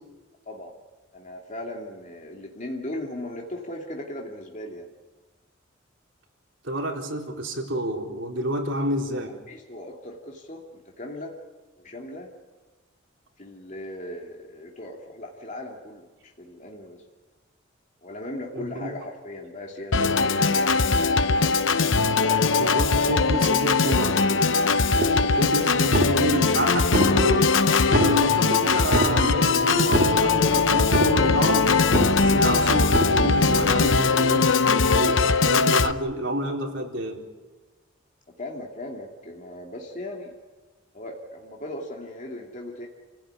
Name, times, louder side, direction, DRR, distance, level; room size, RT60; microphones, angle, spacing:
voice 1, 1.1-4.9 9.3-11.3 11.8-12.3 13.4-17.0 18.0-21.2 22.0-24.1 38.4-40.3 40.9-42.9, left 1 dB, 40° left, 0 dB, 2.7 m, -38 dB
voice 2, 6.6-9.3 18.5-18.9 22.6-24.2 25.3-27.6 27.9-31.7 32.1-37.2, right 1 dB, 70° right, 1 dB, 4.1 m, -29 dB
Organ, 19.9-35.9, left 4 dB, 75° left, 0.9 m, -20 dB
sound 1, 25.0-25.5 25.8-26.5 26.8-27.5 27.8-28.5 28.8-29.5 29.8-30.5 30.8-31.5 31.8-32.5 32.8-33.5, right 1 dB, 50° right, 2.1 m, -27 dB
29.0 x 16.5 x 9.8 m, 1.2 s
head